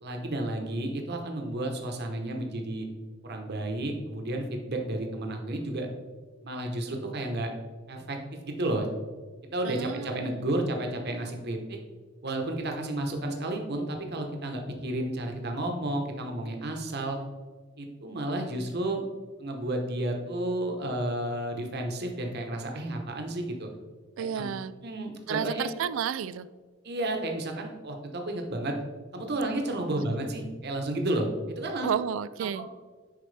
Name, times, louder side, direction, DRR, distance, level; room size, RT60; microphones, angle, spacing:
voice 1, 0.0-2.9 3.2-5.9 6.4-7.5 7.9-8.9 9.5-11.6 12.2-17.2 17.8-19.0 19.4-23.7 24.2-24.5 24.8-25.7 26.8-28.7 29.1-31.9 32.5-32.7, right 1 dB, 55° right, 3 dB, 1.1 m, -32 dB
voice 2, 9.6-10.5 24.2-24.7 25.3-26.5 29.9-30.1 31.8-32.7, right 8 dB, 70° right, 16 dB, 0.3 m, -32 dB
10.5 x 4.4 x 3.4 m, 1.5 s
head